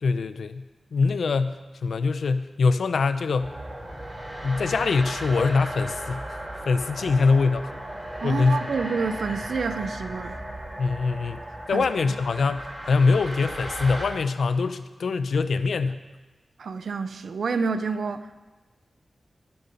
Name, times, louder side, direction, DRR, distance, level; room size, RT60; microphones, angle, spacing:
voice 1, 0.0-0.6 0.9-3.6 4.4-6.4 6.7-7.7 8.2-8.7 10.8-11.4 11.7-16.0, left 4 dB, 85° left, 0.6 m, -23 dB
sound 1, 3.4-14.1, right 1 dB, 20° right, 3.1 m, -36 dB
voice 2, 8.2-10.4 11.7-12.2 16.6-18.3, right 4 dB, 80° right, 0.7 m, -29 dB
19.5 x 6.9 x 5.4 m
wide cardioid pair, 155°, 0 cm